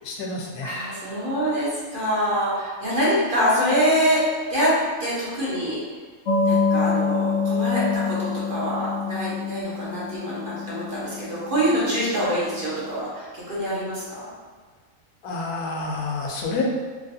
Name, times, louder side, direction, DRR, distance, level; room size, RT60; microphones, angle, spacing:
voice 1, 0.0-0.7 15.2-16.6, left 4 dB, 85° left, 0 dB, 1.1 m, -29 dB
voice 2, 0.6-5.8 6.4-14.3, equal, 40° right, -9 dB, 0.9 m, -25 dB
sound 1, 6.3-12.5, left 5 dB, 70° left, 0.6 m, -26 dB
3.1 x 2.8 x 2.6 m, 1.5 s
omnidirectional pair, 1.6 m